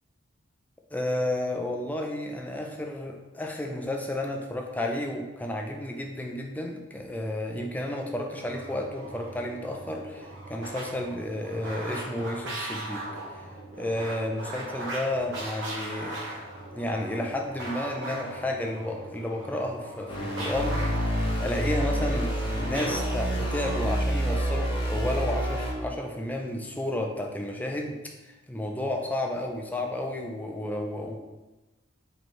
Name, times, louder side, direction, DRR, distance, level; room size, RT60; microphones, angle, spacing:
voice 1, 0.9-13.1 13.3-13.5 13.8-16.2 16.7-28.0 28.2-31.2, left 1 dB, 10° left, 1 dB, 0.3 m, -32 dB
sound 1, 8.3-24.0, right 1 dB, 60° right, 0.9 m, -39 dB
sound 2, 20.1-25.7, right 1 dB, 25° left, 0.8 m, -28 dB
4.3 x 3.0 x 3.2 m, 1.1 s
head